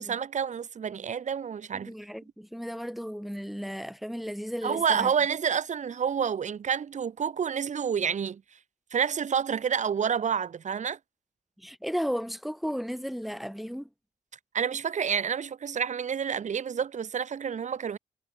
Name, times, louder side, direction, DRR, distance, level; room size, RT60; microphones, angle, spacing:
voice 1, 0.0-1.9 4.6-8.4 8.9-11.0 14.5-18.0, right 7 dB, 55° right, 3.2 m, -29 dB
voice 2, 1.7-5.1 11.6-13.9, equal, ahead, 3.6 m, -34 dB
supercardioid pair, 65°, 15 cm